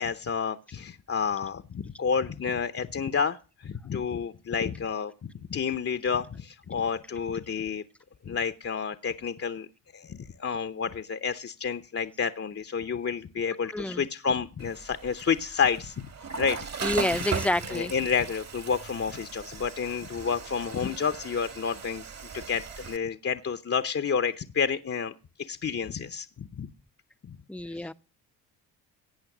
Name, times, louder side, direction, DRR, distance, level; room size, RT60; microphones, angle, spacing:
voice 1, 0.0-7.8 8.2-9.7 9.9-16.1 16.4-16.6 17.7-22.0 22.3-25.1 25.4-26.7 27.2-27.4 27.7-27.9, left 6 dB, 35° left, 0.9 m, -30 dB
voice 2, 13.7-14.0 16.8-17.9 27.5-27.9, left 1 dB, 5° left, 0.7 m, -28 dB
Water / Toilet flush, 14.6-23.0, right 5 dB, 40° right, 1.6 m, -38 dB
16.0 x 8.3 x 6.0 m
supercardioid pair, 55°, 40 cm